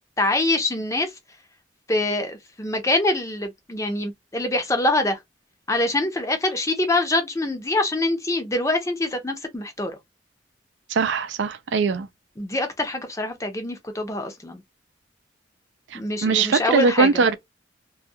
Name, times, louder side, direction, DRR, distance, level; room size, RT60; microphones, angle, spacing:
voice 1, 0.2-1.1 1.9-5.2 5.7-9.9 12.4-14.6 15.9-17.1, left 2 dB, 15° left, 0.6 m, -24 dB
voice 2, 10.9-12.1 15.9-17.3, right 4 dB, 75° right, 0.4 m, -21 dB
2.3 x 2.2 x 2.6 m
head